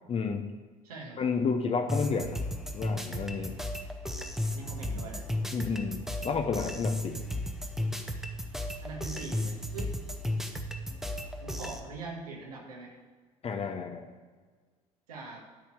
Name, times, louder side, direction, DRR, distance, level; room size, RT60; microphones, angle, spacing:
voice 1, 0.1-0.5 1.2-3.6 5.5-7.2 13.4-14.1, left 5 dB, 30° left, 6 dB, 0.8 m, -31 dB
voice 2, 0.8-1.2 4.5-5.2 8.8-9.9 11.4-13.0 15.1-15.5, right 3 dB, 75° right, 0 dB, 1.8 m, -42 dB
sound 1, 1.9-11.8, left 1 dB, ahead, 1.0 m, -34 dB
10.5 x 4.4 x 7.7 m, 1.5 s
figure-of-eight pair, 65°, 19 cm